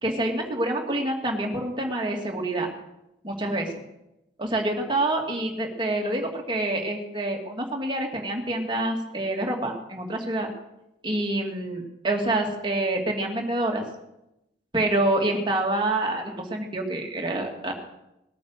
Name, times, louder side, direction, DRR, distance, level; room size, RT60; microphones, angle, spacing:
voice 1, 0.0-2.7 3.2-3.7 4.4-10.5 11.0-13.9 14.7-17.7, right 1 dB, 25° right, 1 dB, 2.3 m, -27 dB
19.5 x 9.1 x 6.6 m, 0.89 s
head